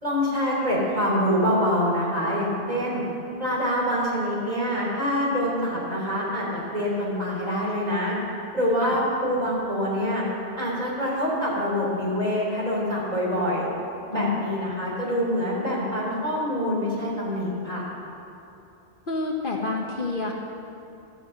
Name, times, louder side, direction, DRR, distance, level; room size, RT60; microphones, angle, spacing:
voice 1, 0.0-3.0 3.4-8.1 8.5-10.2 10.6-13.7 14.1-17.8, equal, 35° right, -5 dB, 3.5 m, -25 dB
voice 2, 14.1-14.5 19.1-20.3, left 3 dB, 50° left, 0 dB, 1.2 m, -28 dB
13.5 x 7.9 x 7.8 m, 2.8 s
omnidirectional pair, 1.2 m